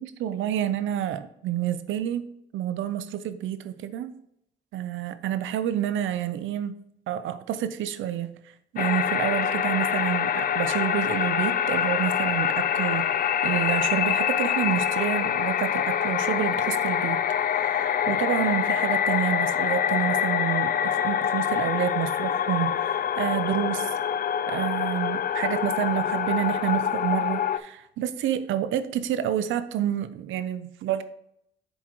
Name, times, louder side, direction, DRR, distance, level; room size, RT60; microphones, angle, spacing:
voice 1, 0.0-2.2 2.5-4.1 4.7-6.7 7.1-8.3 8.7-13.1 13.4-17.2 17.6-23.9 24.5-31.0, right 11 dB, 80° right, 12 dB, 0.6 m, -29 dB
sound 1, 8.8-27.6, left 9 dB, 45° left, 0.5 m, -25 dB
7.7 x 6.2 x 3.0 m, 0.75 s
cardioid pair, 90°, 20 cm